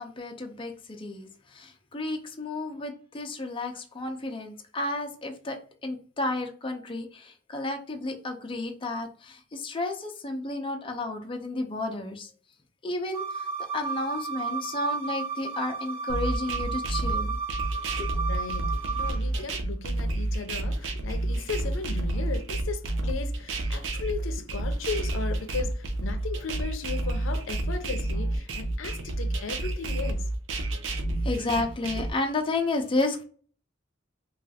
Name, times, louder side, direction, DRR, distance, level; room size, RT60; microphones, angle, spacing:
voice 1, 0.0-12.3 12.8-13.5 13.7-17.4 18.0-18.1 31.2-33.2, left 2 dB, 25° left, 0.5 m, -32 dB
sound 1, 13.1-19.1, right 5 dB, 50° right, 0.8 m, -33 dB
sound 2, 16.1-32.1, right 1 dB, 80° right, 0.5 m, -30 dB
voice 2, 18.3-30.3 31.1-31.2, left 4 dB, 90° left, 0.5 m, -36 dB
3.2 x 2.3 x 2.7 m
head